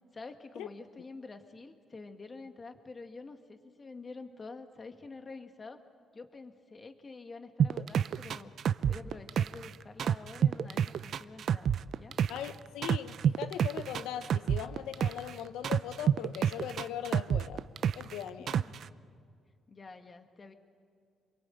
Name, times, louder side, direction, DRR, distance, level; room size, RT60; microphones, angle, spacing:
voice 1, 0.1-5.8 6.1-8.5 8.9-12.2 18.5-18.9 19.7-20.5, left 3 dB, 35° left, 2.0 m, -48 dB
sound 1, 7.6-9.7 10.0-12.5 12.8-15.3 15.6-18.1 18.5-18.8, right 8 dB, 65° right, 0.6 m, -28 dB
voice 2, 12.3-17.6 17.9-18.6, left 10 dB, 90° left, 0.7 m, -39 dB
26.5 x 22.5 x 9.1 m
cardioid pair, 90°, 0 cm